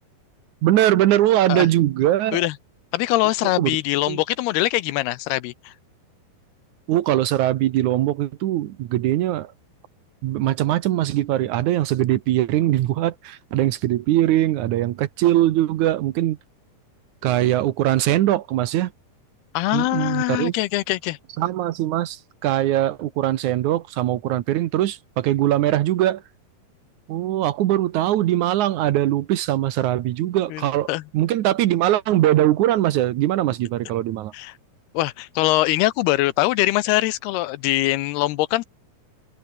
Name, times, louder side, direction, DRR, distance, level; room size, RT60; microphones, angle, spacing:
voice 1, 0.6-2.4 3.6-3.7 4.1-4.2 6.9-9.5 10.2-16.4 17.2-18.9 19.7-20.5 21.4-26.2 27.1-34.3, right 13 dB, 75° right, 1.8 m, -21 dB
voice 2, 2.9-5.7 19.5-21.2 30.5-30.6 30.9-31.0 34.3-34.5 34.9-38.7, left 17 dB, 85° left, 2.8 m, -22 dB
open air
omnidirectional pair, 4.6 m